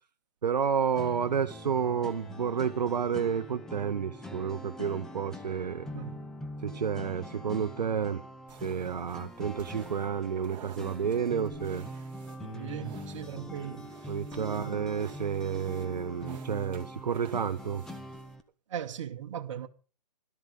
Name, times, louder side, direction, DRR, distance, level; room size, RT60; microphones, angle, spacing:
voice 1, 0.4-5.9 6.6-8.2 8.6-11.9 14.1-17.8, right 7 dB, 80° right, 0.6 m, -30 dB
sound 1, 1.0-18.4, left 1 dB, ahead, 0.6 m, -43 dB
voice 2, 5.9-6.3 12.4-13.9 14.3-14.8 18.7-19.7, right 9 dB, 45° right, 1.4 m, -39 dB
sound 2, 8.5-18.4, right 8 dB, 20° right, 2.0 m, -54 dB
16.5 x 12.5 x 3.9 m
hypercardioid pair, 140°, 21 cm